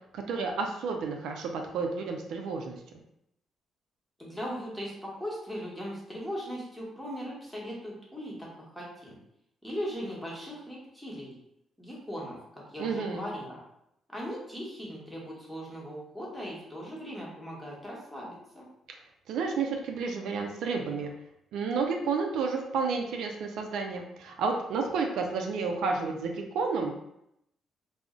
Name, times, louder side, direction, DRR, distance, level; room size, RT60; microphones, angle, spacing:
voice 1, 0.1-2.8 12.8-13.3 19.3-21.1 21.5-27.0, right 4 dB, 80° right, 3 dB, 0.4 m, -31 dB
voice 2, 4.2-9.2 9.6-11.4 11.8-13.6 14.1-18.7, equal, 5° left, -4 dB, 1.1 m, -39 dB
2.4 x 2.0 x 3.6 m, 0.79 s
cardioid pair, 90°, 0 cm